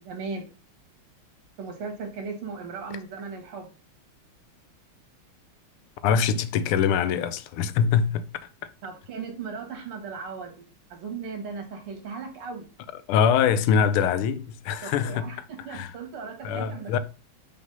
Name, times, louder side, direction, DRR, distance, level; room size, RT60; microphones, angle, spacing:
voice 1, 0.0-0.5 1.6-3.7 8.8-10.5 10.9-12.7 14.8-17.0, right 5 dB, 75° right, 2.4 m, -37 dB
voice 2, 6.0-8.3 13.1-15.3 15.7-15.9 16.4-17.0, left 7 dB, 80° left, 1.4 m, -23 dB
5.3 x 3.9 x 5.3 m
omnidirectional pair, 2.4 m